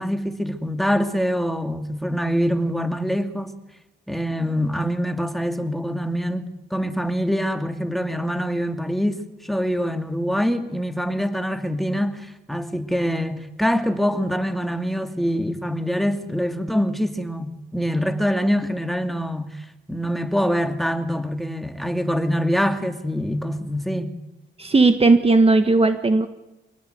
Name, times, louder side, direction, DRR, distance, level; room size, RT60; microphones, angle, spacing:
voice 1, 0.0-3.5 4.1-24.1, equal, ahead, 2.6 m, -24 dB
voice 2, 24.6-26.3, right 3 dB, 30° right, 1.5 m, -16 dB
25.5 x 19.0 x 9.4 m
cardioid pair, 75°, 20 cm